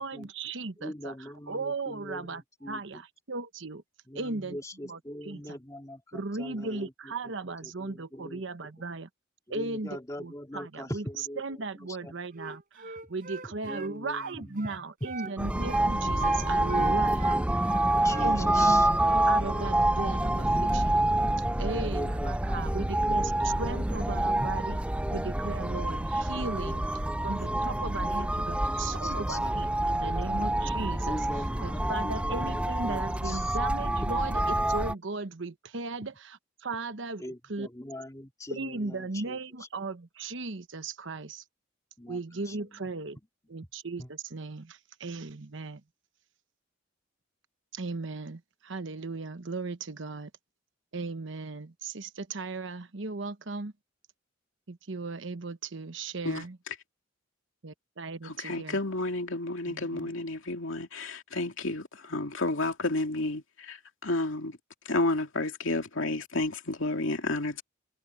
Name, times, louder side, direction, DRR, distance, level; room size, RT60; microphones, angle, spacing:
voice 1, 0.0-1.1 1.5-2.4 2.7-3.8 4.1-4.6 4.9-5.0 5.3-5.4 6.1-9.1 9.5-9.9 10.2-11.0 11.4-17.2 18.2-21.0 21.6-24.8 25.1-26.8 27.2-31.2 31.6-34.4 34.7-36.4 36.6-37.2 37.5-37.7 38.5-41.4 42.1-43.2 43.5-45.8 47.7-50.3 50.9-53.7 54.7-56.6 57.6-58.8 59.7-60.1, right 3 dB, 65° right, 1.1 m, -36 dB
voice 2, 0.8-3.0 4.1-8.9 9.5-12.2 12.5-12.6 13.4-15.3 16.7-18.9 21.5-25.5 26.5-30.4 31.0-33.6 37.2-39.7 42.0-42.9 44.0-44.1, left 1 dB, 15° left, 2.4 m, -43 dB
Wind instrument woodwind instrument, 12.4-15.4 15.6-15.9 16.2-18.8 19.1-19.8, right 4 dB, 45° right, 5.5 m, -42 dB
sound 1, 15.4-34.9, right 1 dB, 5° right, 0.5 m, -27 dB
voice 3, 58.2-63.8 64.0-64.6 64.9-67.6, left 2 dB, 70° left, 2.6 m, -31 dB
head